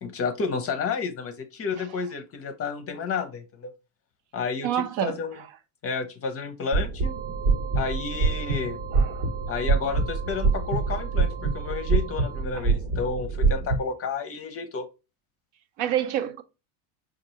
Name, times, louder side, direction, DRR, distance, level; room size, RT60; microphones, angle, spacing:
voice 1, 0.0-3.7 4.3-5.4 5.8-7.2 7.7-8.8 9.5-14.9, left 5 dB, 30° left, 0.6 m, -31 dB
voice 2, 4.6-5.2 8.9-9.3 12.5-12.7 15.8-16.4, right 11 dB, 65° right, 0.7 m, -28 dB
sound 1, 6.7-13.8, right 4 dB, 85° right, 1.4 m, -25 dB
sound 2, 7.0-12.4, right 8 dB, 20° right, 0.4 m, -41 dB
4.4 x 2.4 x 2.8 m
supercardioid pair, 115°, 48 cm